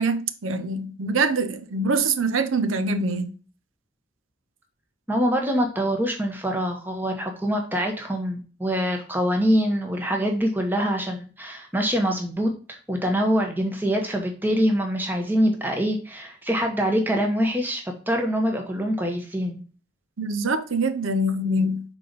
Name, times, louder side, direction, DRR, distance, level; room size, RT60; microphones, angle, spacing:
voice 1, 0.0-3.3 20.2-21.8, right 2 dB, 90° right, 0.7 m, -24 dB
voice 2, 5.1-19.6, equal, 10° right, 1.1 m, -24 dB
5.6 x 4.0 x 5.2 m
head